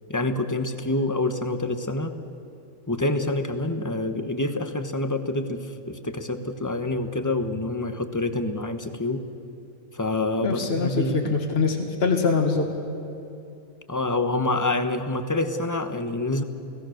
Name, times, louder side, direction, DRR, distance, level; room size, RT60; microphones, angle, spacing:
voice 1, 0.1-2.1 2.9-9.2 9.9-11.3 13.9-16.4, left 2 dB, 15° left, 8 dB, 1.1 m, -27 dB
voice 2, 10.4-12.7, left 4 dB, 50° left, 3 dB, 2.1 m, -23 dB
29.0 x 18.0 x 6.5 m, 2.7 s
omnidirectional pair, 1.4 m